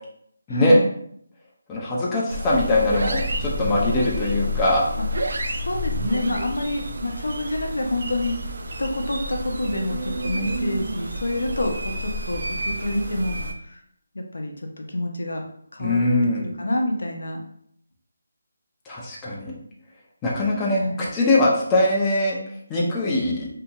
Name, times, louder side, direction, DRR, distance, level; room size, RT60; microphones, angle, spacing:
voice 1, 0.5-0.9 5.0-5.1 5.5-8.4 8.8-13.4 13.7-13.8 14.1-15.4 15.7-16.0 16.4-17.4 20.8-21.0, left 1 dB, 80° left, 2 dB, 0.6 m, -27 dB
voice 2, 1.7-4.9 15.8-16.5 18.9-19.5 20.2-22.4 22.7-23.5, left 1 dB, 10° left, -5 dB, 0.4 m, -21 dB
sound 1, 2.3-13.5, equal, 60° right, 0.4 m, -29 dB
2.8 x 2.6 x 2.3 m, 0.68 s
figure-of-eight pair, 170°, 0 cm